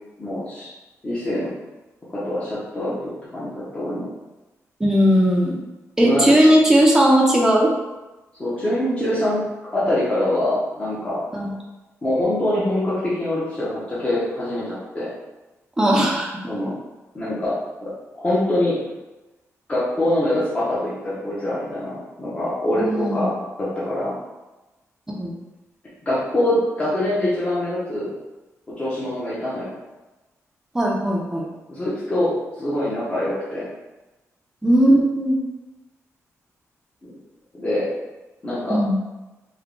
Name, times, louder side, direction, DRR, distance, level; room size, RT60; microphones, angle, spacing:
voice 1, 0.2-0.7 1.0-1.5 2.1-3.0 3.3-4.0 6.0-6.5 8.4-9.4 9.7-11.2 12.0-15.1 16.5-16.7 17.1-18.8 19.7-24.2 26.1-28.1 28.8-29.7 31.7-33.7 37.0-37.1 37.6-37.9 38.4-38.8, left 1 dB, 20° left, -9 dB, 0.8 m, -24 dB
voice 2, 4.8-5.6 6.0-7.7 11.3-11.5 15.8-16.3 22.8-23.3 25.2-25.3 30.7-31.5 34.6-35.4 38.7-39.0, equal, 10° right, -2 dB, 0.6 m, -17 dB
3.5 x 2.2 x 3.7 m, 1.1 s
wide cardioid pair, 175°, 6 cm